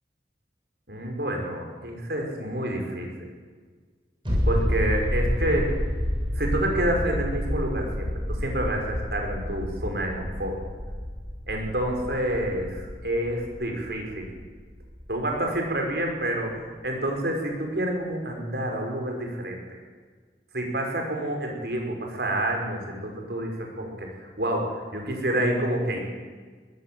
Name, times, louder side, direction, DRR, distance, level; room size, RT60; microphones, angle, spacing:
voice 1, 0.9-3.3 4.5-5.7 6.4-10.6 11.5-14.3 15.1-19.8 20.5-26.0, right 1 dB, 65° right, 1 dB, 5.6 m, -28 dB
sound 1, 4.2-15.6 15.9-16.0, equal, 30° right, 7.2 m, -29 dB
23.0 x 17.5 x 7.8 m, 1.5 s
head